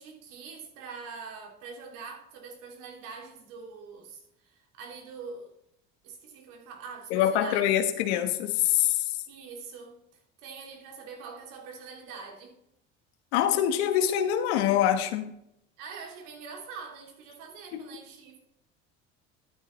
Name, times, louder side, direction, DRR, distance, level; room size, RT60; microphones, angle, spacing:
voice 1, 0.0-5.5 6.0-7.7 9.3-10.0 10.4-12.6 15.8-18.4, right 5 dB, 75° right, 2.7 m, -44 dB
voice 2, 7.1-9.1 13.3-15.3 17.7-17.8, left 10 dB, 85° left, 1.3 m, -25 dB
12.0 x 9.6 x 3.1 m
supercardioid pair, 95°, 32 cm